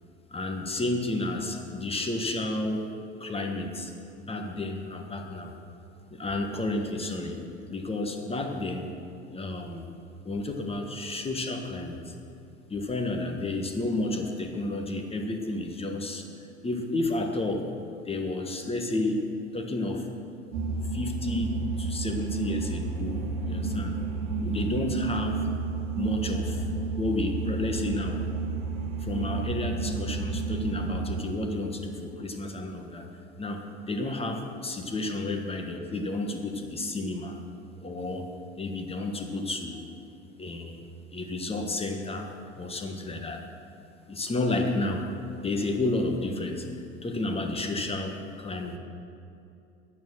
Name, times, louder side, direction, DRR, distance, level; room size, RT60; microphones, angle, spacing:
voice 1, 0.3-2.9 3.2-3.9 4.2-5.5 6.1-7.4 7.7-8.9 9.3-9.9 10.2-12.1 12.7-16.3 16.6-19.3 19.5-20.1 20.9-24.0 24.4-25.5 25.9-26.7 27.0-28.2 29.0-33.1 33.4-37.4 37.8-38.3 38.5-39.9 40.4-40.8 41.1-42.3 42.5-43.4 44.1-45.1 45.4-48.8, left 2 dB, 15° left, 4 dB, 1.5 m, -31 dB
sound 1, 20.5-31.2, right 4 dB, 60° right, 1.6 m, -31 dB
11.0 x 9.0 x 6.4 m, 2.6 s
hypercardioid pair, 80°, 35 cm